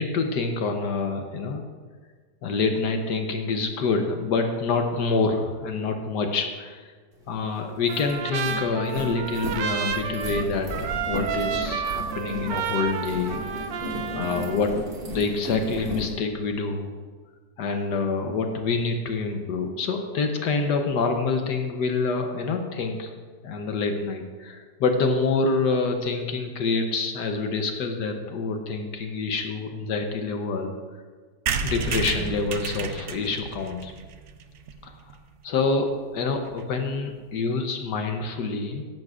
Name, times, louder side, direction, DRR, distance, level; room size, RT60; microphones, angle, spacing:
voice 1, 0.0-1.6 2.4-6.9 7.3-13.4 14.1-14.8 15.0-16.9 17.6-23.1 23.4-30.7 31.6-33.9 34.8-34.9 35.4-38.9, left 4 dB, 75° left, 5 dB, 1.4 m, -26 dB
sound 1, 7.3-7.4 7.7-16.1, left 1 dB, 35° right, 1.7 m, -35 dB
Trumpet, 7.9-14.6, right 7 dB, 85° right, 1.3 m, -31 dB
sound 2, 31.5-35.1 35.6-35.7 35.9-36.0 36.2-36.3 36.5-36.7, right 6 dB, 65° right, 0.7 m, -31 dB
14.5 x 10.5 x 2.4 m, 1.5 s
omnidirectional pair, 1.9 m